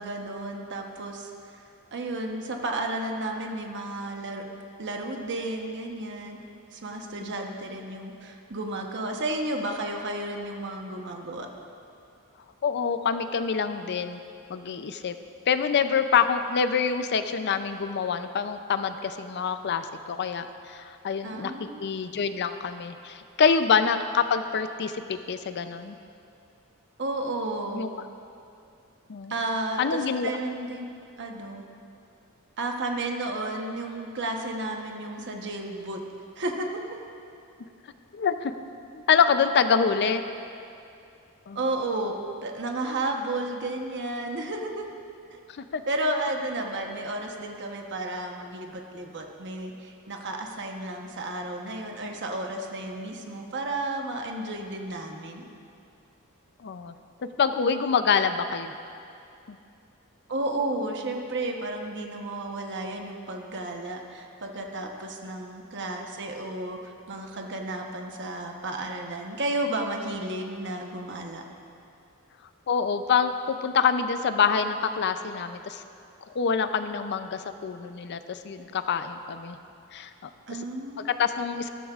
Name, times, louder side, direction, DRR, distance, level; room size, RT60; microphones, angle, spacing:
voice 1, 0.0-1.6 1.9-4.4 4.8-6.4 6.7-11.5 21.2-22.0 27.0-27.8 29.3-30.8 31.2-31.6 32.6-36.0 36.4-36.7 41.5-42.1 42.4-44.9 45.3-45.4 45.9-55.5 60.3-71.4 80.5-81.1, right 2 dB, 55° right, 2 dB, 1.0 m, -32 dB
voice 2, 12.6-14.2 14.5-15.2 15.5-21.5 21.8-26.0 27.7-27.9 29.1-29.3 29.8-30.3 38.1-38.5 38.9-40.2 41.5-41.6 45.5-45.8 56.6-56.9 57.4-58.7 59.5-59.6 72.7-75.8 76.3-79.6 79.9-80.3 81.1-81.7, left 6 dB, 50° left, 10 dB, 0.5 m, -26 dB
14.0 x 13.5 x 2.4 m, 2.6 s
head